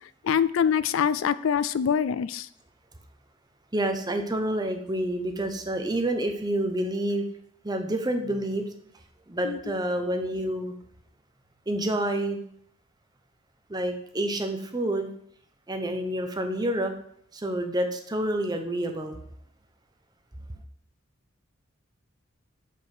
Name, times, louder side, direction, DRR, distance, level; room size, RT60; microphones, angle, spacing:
voice 1, 0.2-2.5 9.4-9.8, left 7 dB, 70° left, 16 dB, 0.4 m, -25 dB
voice 2, 3.7-7.2 7.6-8.7 9.3-10.7 11.7-12.4 13.7-15.1 15.7-16.9 17.3-19.2, right 1 dB, 20° right, 5 dB, 0.9 m, -28 dB
6.1 x 5.5 x 6.5 m, 0.67 s
head